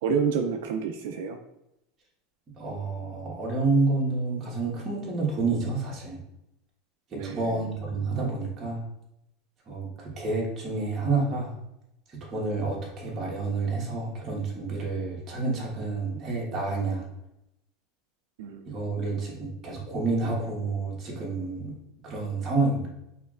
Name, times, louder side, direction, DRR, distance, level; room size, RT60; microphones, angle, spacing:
voice 1, 0.0-1.4 7.2-7.6 18.4-19.0, right 6 dB, 75° right, 4 dB, 0.4 m, -29 dB
voice 2, 2.5-6.2 7.1-8.8 9.7-11.6 12.1-17.1 18.6-22.9, right 3 dB, 30° right, -3 dB, 1.4 m, -29 dB
5.5 x 3.1 x 2.5 m, 0.85 s
supercardioid pair, 150°, 0 cm